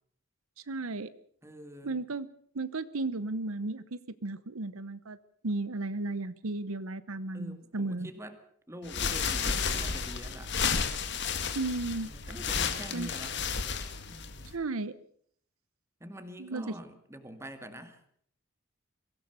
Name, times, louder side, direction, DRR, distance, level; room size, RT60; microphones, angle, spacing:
voice 1, 0.7-1.1 1.8-2.3 2.5-5.2 5.4-8.1 11.5-12.1 12.9-13.1 14.5-14.9 16.4-16.6, right 2 dB, 80° right, 14 dB, 0.9 m, -34 dB
voice 2, 1.4-2.0 7.3-8.4 8.7-10.5 11.8-13.4 14.1-14.6 16.0-18.0, equal, 15° right, 8 dB, 2.1 m, -45 dB
sound 1, 8.8-14.5, left 6 dB, 55° left, 2.0 m, -32 dB
23.5 x 16.5 x 6.9 m, 0.62 s
head